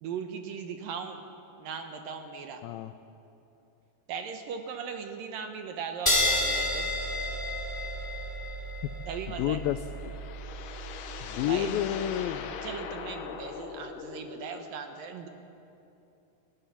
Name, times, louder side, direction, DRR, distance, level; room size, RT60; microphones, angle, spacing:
voice 1, 0.0-1.2 1.6-2.6 4.1-6.9 9.1-9.6 11.5-11.8 12.6-15.3, right 6 dB, 70° right, 6 dB, 2.5 m, -38 dB
voice 2, 2.6-2.9 9.3-9.8 11.2-12.5, left 12 dB, 85° left, 9 dB, 2.1 m, -30 dB
sound 1, 6.1-13.0, left 1 dB, 5° left, 2.2 m, -32 dB
sound 2, 9.6-14.7, left 7 dB, 70° left, 2.1 m, -41 dB
20.5 x 14.0 x 10.0 m, 2.9 s
omnidirectional pair, 4.8 m